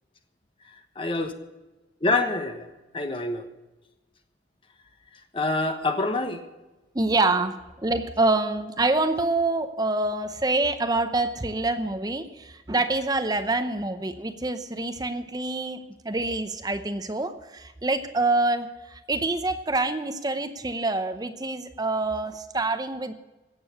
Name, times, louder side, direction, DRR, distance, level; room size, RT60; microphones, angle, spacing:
voice 1, 1.0-1.3 2.0-2.7 2.9-3.4 5.3-6.4, left 2 dB, 30° left, 7 dB, 1.2 m, -26 dB
voice 2, 6.9-23.1, right 2 dB, 20° right, 9 dB, 0.7 m, -26 dB
17.0 x 6.9 x 8.2 m, 1.1 s
head